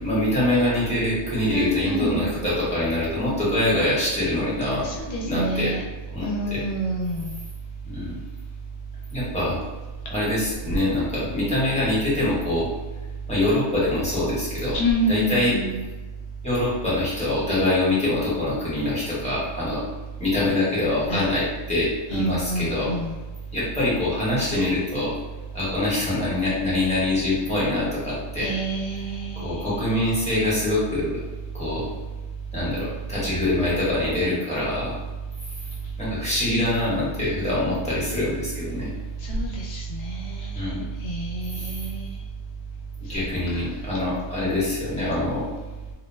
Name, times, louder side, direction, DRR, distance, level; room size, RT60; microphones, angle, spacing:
voice 1, 0.0-4.9 5.2-5.7 6.1-6.6 7.8-8.1 9.1-9.6 10.1-12.7 13.3-14.7 15.1-15.6 16.4-19.8 20.2-22.9 23.5-25.1 25.5-28.5 29.4-31.2 31.5-31.9 32.5-34.9 36.0-38.9 40.5-40.9 41.6-41.7 43.0-45.5, left 1 dB, 5° left, -8 dB, 0.9 m, -24 dB
voice 2, 1.5-2.3 4.8-5.8 6.2-7.4 14.7-15.8 21.1-21.3 22.1-23.2 28.4-30.1 39.2-42.2 43.5-43.6, right 1 dB, 65° left, -3 dB, 0.9 m, -28 dB
2.5 x 2.0 x 3.2 m, 1.2 s
omnidirectional pair, 1.3 m